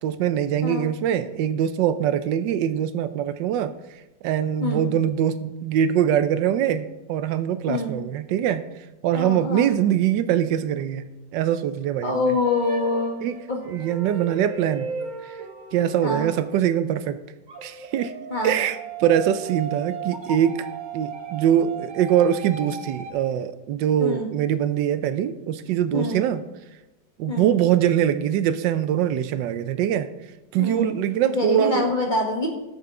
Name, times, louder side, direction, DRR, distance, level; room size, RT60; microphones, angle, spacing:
voice 1, 0.0-3.7 4.2-8.6 9.0-11.0 11.3-12.2 13.2-13.4 13.7-14.9 15.2-15.4 15.7-17.2 17.6-18.1 18.4-20.7 20.9-26.4 27.2-30.1 30.5-31.9, right 10 dB, 80° right, 12 dB, 1.3 m, -23 dB
voice 2, 7.7-8.0 9.1-9.7 12.0-13.2 13.5-13.6 16.0-16.3 18.3-18.6 24.0-24.3 25.9-26.3 27.3-27.5 30.6-31.0 31.2-32.5, left 2 dB, 30° left, 0 dB, 1.3 m, -25 dB
sound 1, 12.4-16.7 17.5-23.1, right 5 dB, 30° right, 1.0 m, -36 dB
13.0 x 7.1 x 3.7 m, 0.99 s
omnidirectional pair, 2.0 m